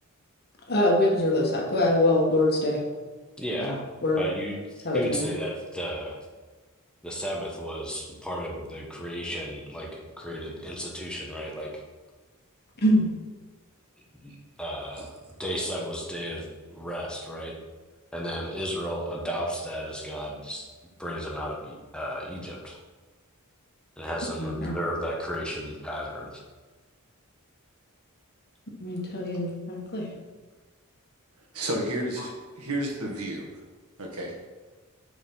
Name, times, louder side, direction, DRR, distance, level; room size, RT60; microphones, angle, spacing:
voice 1, 0.7-2.8 3.6-3.7 4.0-4.2 4.8-5.3 12.8-13.1 24.4-24.7 28.8-30.1, left 1 dB, 45° left, -1 dB, 1.6 m, -24 dB
voice 2, 3.4-3.8 4.2-6.2 7.0-9.9 10.2-11.8 14.2-14.3 14.6-15.1 15.4-17.5 18.1-20.7 21.0-22.8 24.0-26.4, equal, 5° left, -2 dB, 1.3 m, -34 dB
voice 3, 31.5-33.5 34.0-34.3, right 1 dB, 85° right, 0 dB, 1.7 m, -31 dB
6.9 x 4.9 x 5.6 m, 1.4 s
head